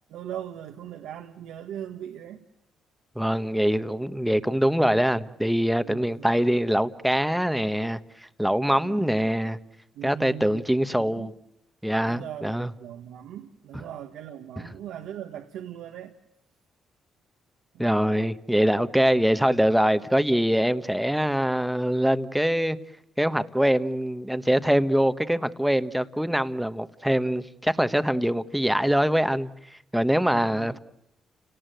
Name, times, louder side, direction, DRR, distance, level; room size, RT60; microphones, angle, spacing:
voice 1, 0.1-2.4 5.8-6.3 8.8-9.2 9.9-10.6 10.9-11.3 12.1-16.1 17.7-17.8 30.3-30.8, right 10 dB, 85° right, 1.6 m, -39 dB
voice 2, 3.1-8.0 8.4-9.6 10.0-11.3 11.8-12.7 17.8-22.8 23.2-29.5 29.9-30.8, equal, ahead, 1.2 m, -23 dB
30.0 x 18.0 x 9.2 m
cardioid pair, 90°, 0 cm